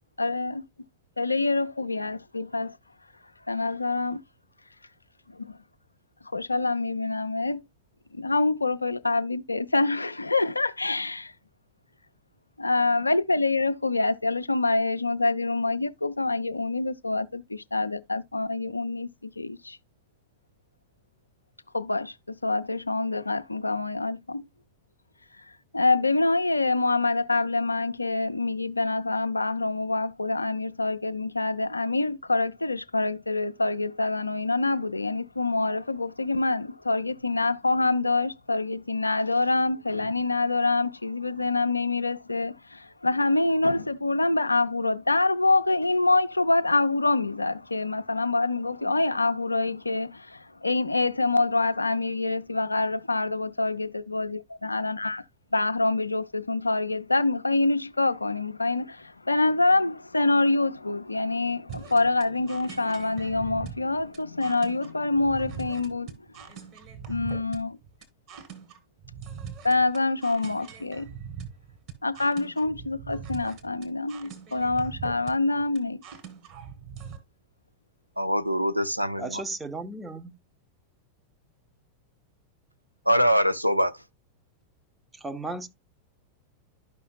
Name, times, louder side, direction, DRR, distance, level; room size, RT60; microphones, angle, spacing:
voice 1, 0.2-0.6 1.2-2.8 3.5-4.2 5.3-5.6 6.3-7.6 8.1-11.3 12.6-19.8 21.7-24.4 25.4-25.5 25.7-55.2 55.5-66.2 67.1-67.8 69.6-71.1 72.0-76.0, left 2 dB, 80° left, 0.4 m, -26 dB
sound 1, 61.7-77.2, right 7 dB, 40° right, 1.9 m, -42 dB
voice 2, 78.2-79.4 83.1-84.0, equal, 90° right, 0.4 m, -23 dB
voice 3, 79.2-80.3 85.2-85.7, right 3 dB, 10° right, 0.7 m, -34 dB
12.0 x 5.7 x 2.3 m
figure-of-eight pair, 90°, 0 cm